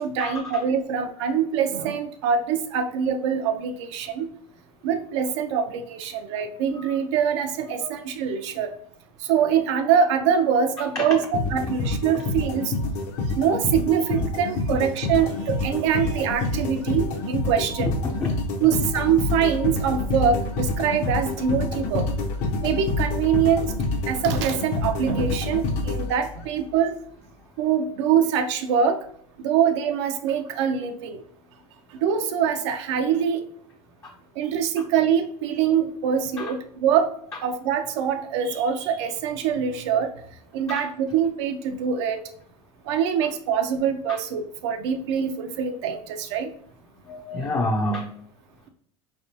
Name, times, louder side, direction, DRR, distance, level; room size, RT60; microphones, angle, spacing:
voice 1, 0.0-4.3 4.8-8.7 9.3-11.2 11.5-12.7 13.3-17.9 18.6-22.0 22.6-23.7 24.1-26.9 27.6-29.0 29.4-31.2 31.9-33.4 34.4-37.1 37.4-40.1 40.5-42.2 42.9-46.5, right 7 dB, 75° right, 6 dB, 0.6 m, -24 dB
voice 2, 7.6-8.1 10.9-11.1 17.9-18.0 18.2-18.3 34.0-34.1 36.4-36.5 40.7-40.9 44.1-44.2 47.1-48.1, left 1 dB, 20° left, 0 dB, 0.5 m, -28 dB
sound 1, 11.3-26.6, left 2 dB, 55° left, 0.8 m, -27 dB
4.3 x 3.4 x 2.7 m, 0.63 s
supercardioid pair, 150°, 15 cm